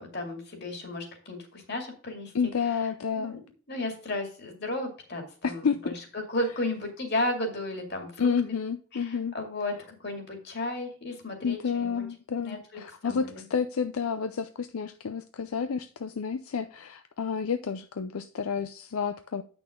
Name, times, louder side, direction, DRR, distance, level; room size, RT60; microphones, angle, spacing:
voice 1, 0.0-2.3 3.1-3.4 3.7-8.3 8.9-9.7 10.0-12.0 12.4-13.4, left 1 dB, 50° left, 4 dB, 2.3 m, -34 dB
voice 2, 2.3-3.4 5.4-5.9 8.2-9.4 11.4-19.4, left 6 dB, 80° left, 10 dB, 0.5 m, -30 dB
8.6 x 6.2 x 3.6 m, 0.41 s
head